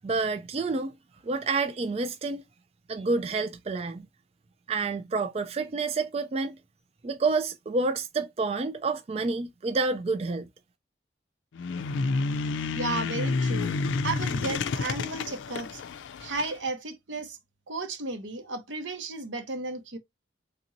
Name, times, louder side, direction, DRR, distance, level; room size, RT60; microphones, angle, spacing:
voice 1, 0.0-0.9 1.2-2.4 2.9-4.1 4.7-6.6 7.0-10.5, right 3 dB, 35° right, 0.3 m, -28 dB
sound 1, 11.5-16.5, left 4 dB, 90° left, 0.4 m, -30 dB
voice 2, 12.7-13.8 14.0-15.8 16.2-17.4 17.7-20.0, right 3 dB, 85° right, 0.9 m, -33 dB
3.4 x 2.9 x 2.5 m
head